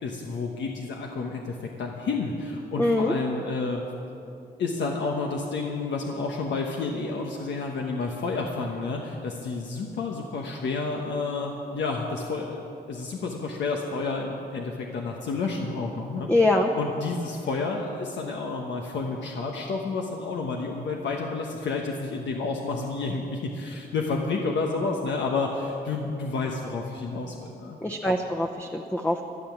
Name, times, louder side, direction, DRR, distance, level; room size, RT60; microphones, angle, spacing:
voice 1, 0.0-3.8 4.6-16.3 16.8-27.8, left 3 dB, 90° left, 0 dB, 1.2 m, -30 dB
voice 2, 2.8-3.1 16.3-16.7 27.8-29.2, left 2 dB, 10° left, 2 dB, 0.8 m, -23 dB
12.5 x 12.0 x 7.3 m, 2.7 s
cardioid pair, 105°, 18 cm